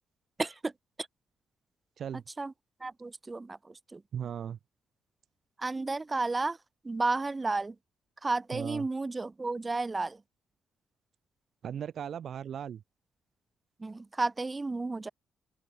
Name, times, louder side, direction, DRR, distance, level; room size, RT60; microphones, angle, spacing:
voice 1, 0.4-0.7 2.4-2.5 2.8-4.0 5.6-6.6 6.8-7.8 8.2-10.2 13.8-15.1, right 3 dB, 20° right, 3.6 m, -32 dB
voice 2, 4.1-4.6 8.5-8.9 11.6-12.8, right 8 dB, 60° right, 1.7 m, -37 dB
open air
cardioid pair, 90°, 0 cm